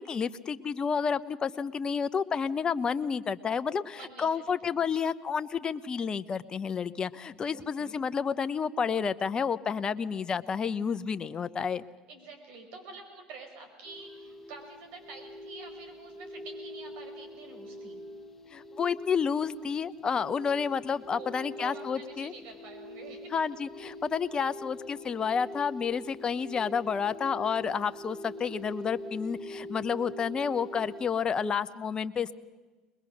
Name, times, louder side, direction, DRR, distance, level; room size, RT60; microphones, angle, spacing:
voice 1, 0.0-11.8 18.5-22.3 23.3-32.3, left 6 dB, 35° left, 13 dB, 0.8 m, -30 dB
voice 2, 3.9-4.3 4.6-4.8 7.3-8.0 12.1-18.0 21.1-23.4, right 4 dB, 70° right, 4 dB, 5.3 m, -48 dB
sound 1, 13.8-31.1, left 1 dB, 15° left, 1.8 m, -44 dB
21.5 x 21.5 x 6.5 m, 1.3 s
supercardioid pair, 85°, 3 cm